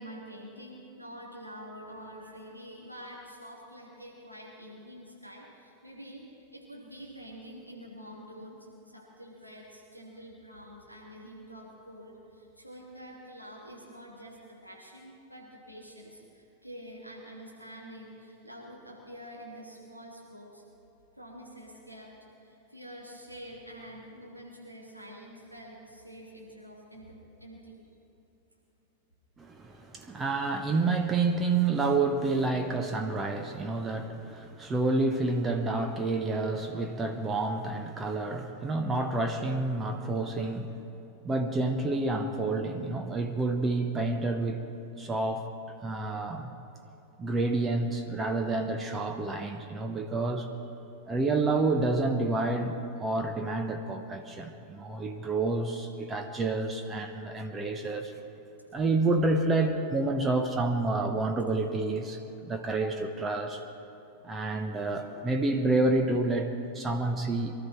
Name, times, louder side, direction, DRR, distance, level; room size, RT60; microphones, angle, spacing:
voice 1, 0.0-20.6 21.2-22.1 22.4-27.8 58.7-58.8, equal, 90° right, -4 dB, 3.0 m, -47 dB
voice 2, 29.4-40.8 41.2-44.6 45.0-45.5 45.8-46.5 47.2-50.5 51.1-52.7 53.0-58.1 58.7-63.6 64.2-67.5, right 3 dB, 20° right, 5 dB, 1.1 m, -29 dB
23.5 x 12.5 x 4.4 m, 3.0 s
figure-of-eight pair, 90°, 0 cm